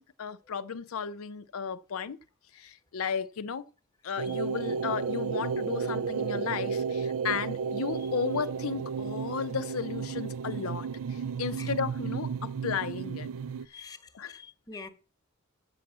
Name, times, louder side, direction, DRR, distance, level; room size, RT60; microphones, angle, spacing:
voice 1, 0.0-2.2 2.5-3.7 4.0-13.3 14.1-14.4, left 6 dB, 75° left, 0.5 m, -34 dB
sound 1, 4.2-13.7, right 6 dB, 70° right, 0.4 m, -33 dB
voice 2, 13.7-14.9, left 4 dB, 20° left, 1.1 m, -46 dB
6.9 x 6.1 x 7.4 m
head